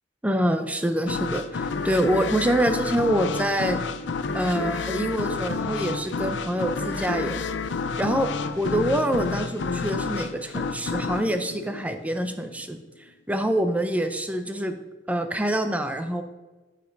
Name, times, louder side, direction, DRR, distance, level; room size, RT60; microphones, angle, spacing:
voice 1, 0.2-3.8 4.3-7.5 8.0-8.3 8.6-12.8 13.3-14.8 15.1-16.2, right 1 dB, 10° right, 7 dB, 0.5 m, -25 dB
sound 1, 1.1-12.5, left 4 dB, 80° left, 0.5 m, -30 dB
7.4 x 6.8 x 3.9 m, 1.2 s
head